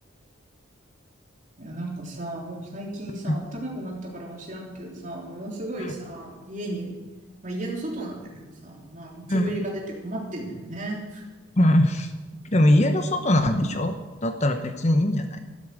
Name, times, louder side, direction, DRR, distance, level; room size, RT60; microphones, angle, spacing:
voice 1, 1.6-6.9 7.4-11.2, right 1 dB, 35° right, -1 dB, 3.6 m, -34 dB
voice 2, 11.6-12.1 12.5-15.4, left 1 dB, 35° left, 7 dB, 0.9 m, -21 dB
13.0 x 12.5 x 7.7 m, 1.2 s
head